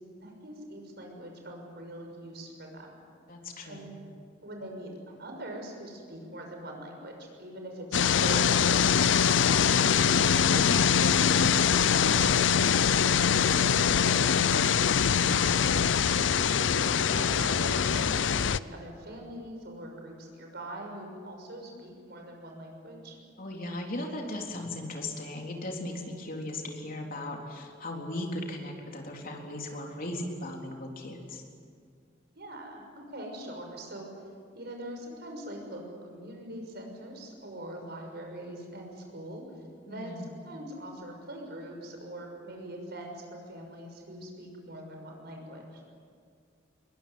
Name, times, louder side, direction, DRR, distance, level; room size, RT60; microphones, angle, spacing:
voice 1, 0.2-2.9 3.6-4.0 4.4-10.0 10.5-12.7 13.0-15.0 15.7-15.9 16.6-23.2 32.3-34.1 34.5-45.8, right 1 dB, 60° right, 2 dB, 6.3 m, -42 dB
voice 2, 3.3-3.9 15.1-15.7 23.4-31.4 39.9-40.3, left 1 dB, 50° left, 1 dB, 3.9 m, -37 dB
sound 1, 7.9-18.6, left 7 dB, 70° left, 0.6 m, -23 dB
22.5 x 21.5 x 9.6 m, 2.2 s
head